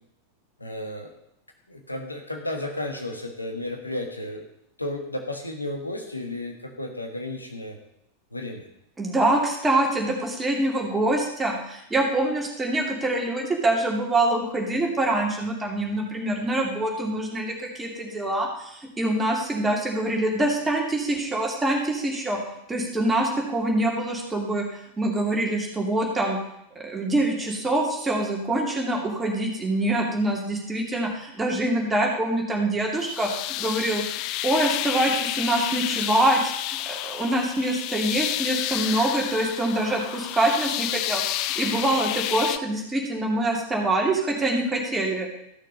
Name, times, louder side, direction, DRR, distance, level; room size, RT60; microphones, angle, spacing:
voice 1, 0.6-1.1 1.7-4.4 4.8-7.7 8.3-8.7, left 1 dB, 85° left, 3 dB, 1.5 m, -33 dB
voice 2, 9.0-22.4 22.7-24.7 25.0-26.4 26.8-33.3 33.6-34.0 34.4-41.2 41.6-45.3, right 1 dB, 10° right, 0 dB, 2.6 m, -25 dB
sound 1, 33.0-42.6, left 15 dB, 40° left, 0.5 m, -30 dB
14.0 x 6.4 x 5.4 m, 0.78 s
figure-of-eight pair, 90°, 0 cm